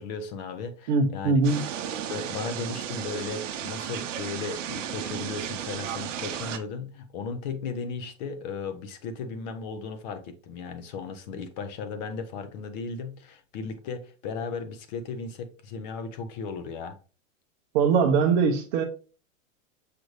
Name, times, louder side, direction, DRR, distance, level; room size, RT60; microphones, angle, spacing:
voice 1, 0.0-1.4 2.1-17.0, left 5 dB, 35° left, 0.6 m, -36 dB
voice 2, 0.9-1.6 17.7-18.8, right 5 dB, 35° right, 0.6 m, -22 dB
sound 1, 1.4-6.6, right 9 dB, 70° right, 0.7 m, -34 dB
6.5 x 2.5 x 3.1 m
hypercardioid pair, 150°, 39 cm